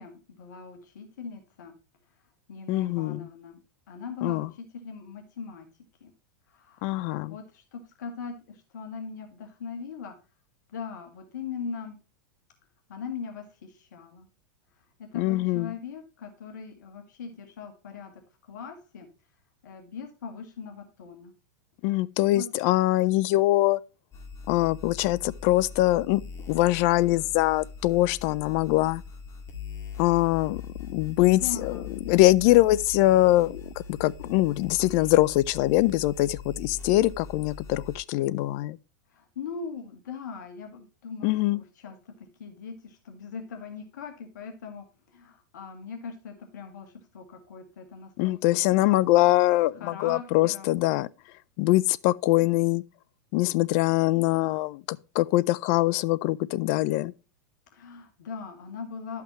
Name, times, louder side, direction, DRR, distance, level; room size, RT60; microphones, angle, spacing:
voice 1, 0.0-1.7 2.5-3.6 3.9-5.7 6.0-6.1 6.5-7.0 7.3-10.1 10.7-12.0 12.9-14.3 15.0-18.1 18.5-19.1 19.6-21.3 22.2-22.5 30.4-30.5 31.0-31.9 39.1-49.0 49.8-50.7 57.7-59.2, left 5 dB, 75° left, 1.9 m, -40 dB
voice 2, 2.7-3.3 4.2-4.5 6.8-7.4 15.1-15.7 21.8-23.8 24.5-29.0 30.0-31.8 32.1-33.6 33.9-38.8 41.2-41.6 48.2-51.1 51.6-52.8 53.3-57.1, left 17 dB, 55° left, 0.5 m, -23 dB
sound 1, 24.1-38.0, left 5 dB, 30° left, 2.0 m, -41 dB
11.5 x 5.8 x 3.0 m
hypercardioid pair, 110°, 10 cm